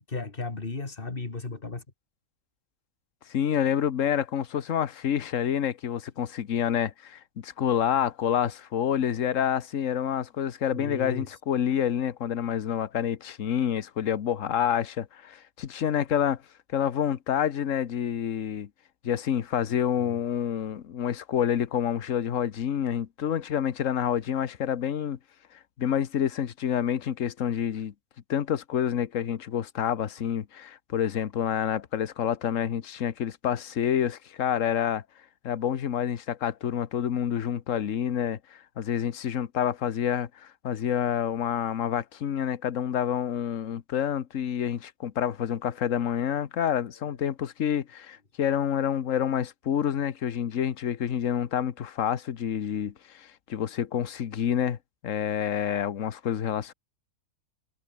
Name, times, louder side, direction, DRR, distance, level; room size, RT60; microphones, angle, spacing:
voice 1, 0.0-1.8 10.7-11.3 20.0-20.2 47.0-47.2, left 3 dB, 35° left, 2.5 m, -35 dB
voice 2, 3.3-16.4 16.7-18.7 19.0-25.2 25.8-27.9 28.3-35.0 35.4-54.8 55.0-56.7, left 9 dB, 55° left, 1.4 m, -28 dB
omnidirectional pair, 1.7 m